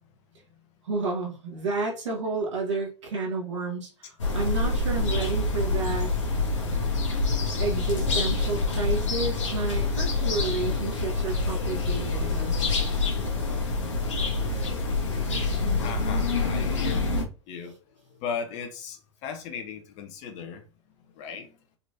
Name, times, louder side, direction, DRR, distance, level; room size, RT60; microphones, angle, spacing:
voice 1, 0.8-4.1 4.3-6.1 7.6-12.5, right 3 dB, 70° right, 1.4 m, -31 dB
sound 1, 4.2-17.2, left 3 dB, 75° left, 1.2 m, -26 dB
voice 2, 6.3-6.7 7.1-7.3 15.8-17.0 17.5-20.7 21.0-21.6, left 6 dB, 45° left, 0.9 m, -38 dB
4.0 x 3.1 x 2.6 m
figure-of-eight pair, 90°, 16 cm